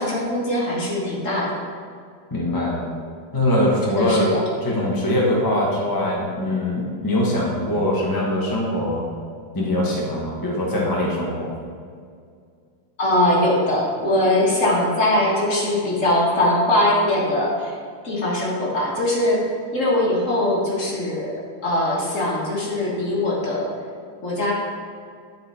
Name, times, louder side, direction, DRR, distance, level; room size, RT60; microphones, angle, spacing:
voice 1, 0.0-1.6 3.9-4.4 13.0-17.8 18.0-21.3 21.6-23.7 24.2-24.5, left 1 dB, 40° left, -4 dB, 1.5 m, -21 dB
voice 2, 2.3-2.9 3.3-4.3 4.6-9.1 9.5-11.6, left 1 dB, 20° left, -3 dB, 0.6 m, -22 dB
10.5 x 4.3 x 4.2 m, 2.2 s
omnidirectional pair, 2.4 m